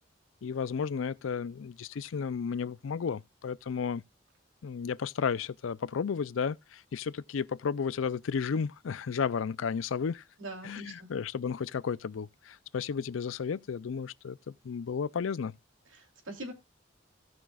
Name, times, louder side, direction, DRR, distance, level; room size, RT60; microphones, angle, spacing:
voice 1, 0.4-4.0 4.6-10.2 10.6-15.5, left 6 dB, 85° left, 0.4 m, -33 dB
voice 2, 10.4-11.1 15.9-16.5, right 1 dB, 90° right, 3.1 m, -42 dB
17.5 x 6.1 x 2.3 m
head